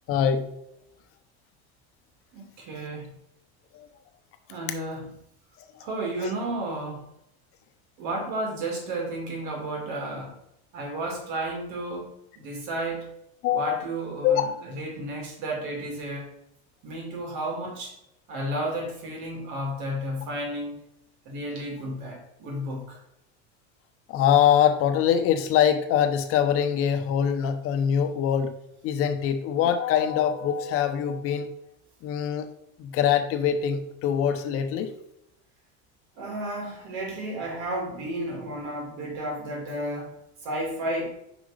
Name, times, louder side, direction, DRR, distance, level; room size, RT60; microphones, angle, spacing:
voice 1, 0.1-0.5 6.2-6.3 13.4-13.8 14.2-14.5 24.1-28.5 28.8-31.5 32.0-32.5 32.8-34.9, left 9 dB, 45° left, 8 dB, 0.9 m, -23 dB
voice 2, 2.3-3.1 4.5-5.1 5.8-7.0 8.0-10.3 10.7-12.1 12.4-13.1 13.5-16.3 16.8-18.0 18.3-20.8 21.2-23.0 36.2-41.1, right 1 dB, 60° right, 0 dB, 2.6 m, -32 dB
5.1 x 5.0 x 4.9 m, 0.80 s
supercardioid pair, 140°, 31 cm